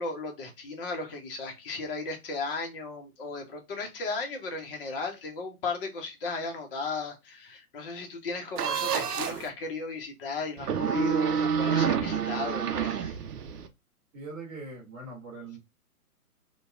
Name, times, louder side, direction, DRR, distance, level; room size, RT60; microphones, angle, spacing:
voice 1, 0.0-13.2, left 3 dB, 40° left, 3 dB, 0.8 m, -35 dB
sound 1, 8.6-9.5 10.6-13.7, right 7 dB, 85° right, 0.6 m, -28 dB
voice 2, 14.1-15.6, right 3 dB, 10° right, -9 dB, 0.6 m, -41 dB
2.7 x 2.2 x 2.3 m, 0.23 s
hypercardioid pair, 135°, 45 cm